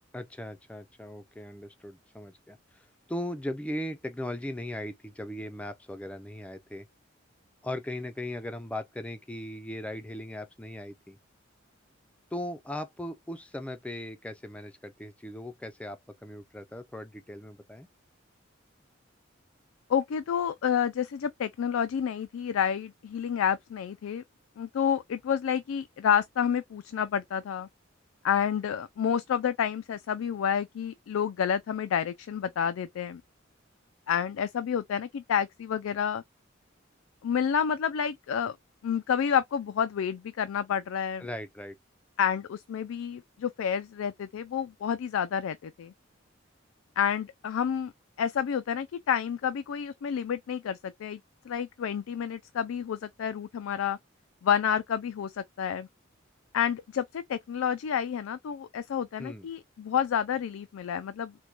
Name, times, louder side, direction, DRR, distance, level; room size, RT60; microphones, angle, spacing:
voice 1, 0.1-6.9 7.6-11.2 12.3-17.9 41.2-41.8 59.2-59.5, left 1 dB, 5° left, 0.3 m, -38 dB
voice 2, 19.9-24.2 24.6-27.7 28.2-33.2 34.1-36.2 37.2-38.6 38.8-41.3 42.2-45.9 47.0-47.9 48.2-51.2 51.5-54.0 54.4-55.9 56.5-61.3, left 8 dB, 90° left, 0.3 m, -29 dB
4.4 x 2.2 x 2.4 m
head